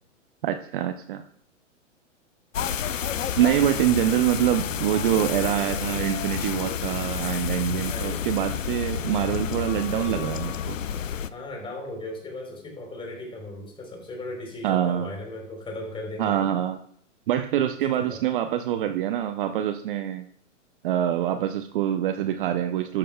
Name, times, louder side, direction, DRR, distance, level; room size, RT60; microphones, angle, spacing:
voice 1, 0.4-1.2 3.4-10.8 14.6-15.1 16.2-16.8 17.3-20.3 20.8-23.0, right 11 dB, 45° right, 9 dB, 0.7 m, -25 dB
sound 1, 2.5-11.3, left 8 dB, 80° left, 0.7 m, -30 dB
voice 2, 7.9-8.3 9.1-9.2 11.3-16.5 18.0-18.2 22.1-22.2, left 2 dB, 15° left, 1 dB, 3.6 m, -37 dB
13.5 x 11.0 x 2.3 m, 0.65 s
hypercardioid pair, 120°, 38 cm